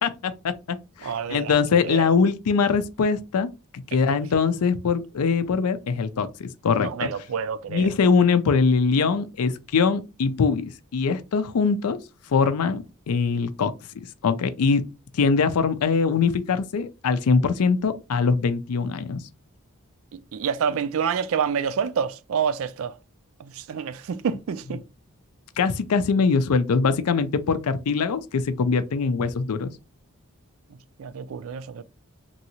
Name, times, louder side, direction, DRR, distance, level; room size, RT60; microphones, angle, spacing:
voice 1, 0.0-3.5 3.7-7.1 7.7-12.0 12.3-13.7 14.2-14.9 15.1-19.2 25.6-29.7, left 5 dB, 85° left, 0.4 m, -22 dB
voice 2, 1.0-1.5 1.8-2.1 4.1-4.2 6.7-7.9 20.3-22.9 23.4-24.8 31.0-31.8, right 7 dB, 65° right, 0.3 m, -28 dB
3.0 x 2.7 x 2.8 m
head